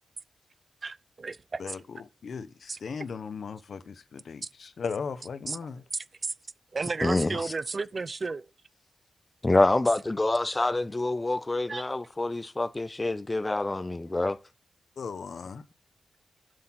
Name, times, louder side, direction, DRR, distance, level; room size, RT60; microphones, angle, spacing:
voice 1, 0.8-1.6 2.7-2.8 5.5-5.6 5.9-6.3 6.7-8.5 11.7-11.8, right 4 dB, 40° right, 0.4 m, -33 dB
voice 2, 1.6-5.8 15.0-15.6, left 5 dB, 65° left, 0.8 m, -37 dB
voice 3, 7.0-7.5 9.4-14.4, left 2 dB, 20° left, 0.6 m, -26 dB
7.7 x 6.5 x 5.9 m
wide cardioid pair, 95°, 0 cm